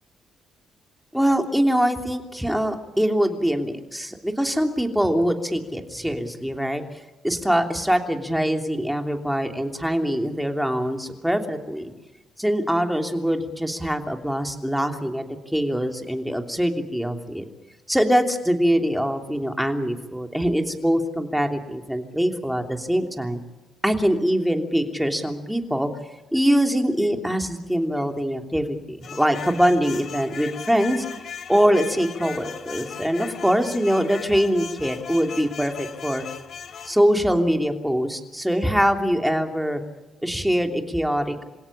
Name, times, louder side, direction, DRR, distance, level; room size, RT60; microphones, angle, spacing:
voice 1, 1.1-6.8 7.2-11.9 12.4-15.2 15.5-17.4 17.9-23.4 23.8-25.9 26.3-31.0 31.5-36.2 36.8-39.8 40.2-41.4, equal, ahead, 4 dB, 3.1 m, -23 dB
sound 1, 29.0-37.0, left 7 dB, 60° left, 2.6 m, -37 dB
27.0 x 17.0 x 8.8 m, 1.1 s
cardioid pair, 90°, 0 cm